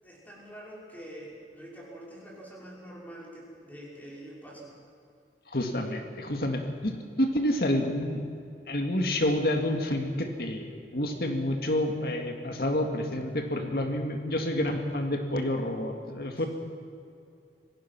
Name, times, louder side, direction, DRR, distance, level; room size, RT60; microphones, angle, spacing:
voice 1, 0.0-4.8 16.4-16.5, right 1 dB, 10° left, -5 dB, 5.5 m, -45 dB
voice 2, 5.5-8.2 8.7-16.5, left 1 dB, 55° left, 4 dB, 2.1 m, -29 dB
26.5 x 17.0 x 6.1 m, 2.5 s
head